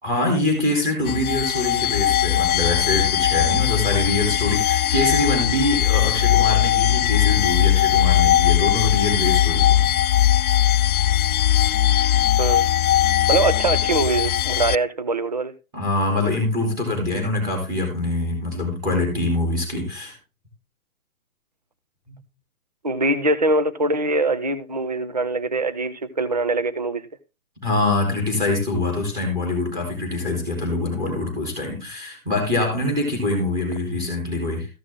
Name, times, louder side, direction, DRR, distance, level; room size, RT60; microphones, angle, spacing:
voice 1, 0.0-9.8 15.7-20.1 22.1-22.2 27.6-34.7, left 2 dB, 10° right, 2 dB, 3.2 m, -24 dB
sound 1, 1.1-14.8, left 12 dB, 75° left, 0.5 m, -19 dB
voice 2, 12.4-12.7 13.3-15.5 22.8-27.1, right 2 dB, 30° right, 13 dB, 0.4 m, -23 dB
14.0 x 6.2 x 3.5 m, 0.28 s
hypercardioid pair, 160°, 43 cm